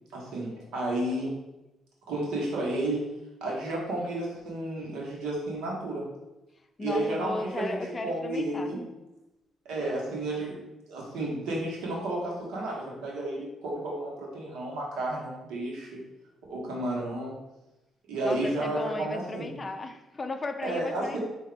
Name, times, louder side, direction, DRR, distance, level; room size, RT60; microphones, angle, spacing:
voice 1, 0.1-1.3 2.1-3.0 3.4-6.1 6.8-8.8 9.6-10.6 10.9-16.0 16.5-17.3 18.1-19.5 20.6-21.2, right 1 dB, 90° right, -3 dB, 1.3 m, -32 dB
voice 2, 6.8-8.7 18.2-21.2, left 3 dB, 30° left, 7 dB, 0.4 m, -35 dB
4.8 x 2.7 x 3.4 m, 1.0 s
cardioid pair, 90°, 0 cm